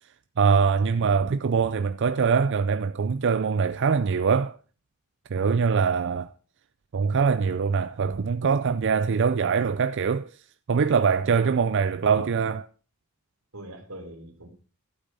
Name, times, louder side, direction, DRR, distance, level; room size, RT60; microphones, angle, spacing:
voice 1, 0.4-4.6 5.3-6.3 6.9-10.4 10.7-12.7, right 5 dB, 60° right, 0.5 m, -23 dB
voice 2, 13.5-14.5, right 1 dB, 85° right, 3.2 m, -43 dB
12.0 x 8.4 x 5.5 m
head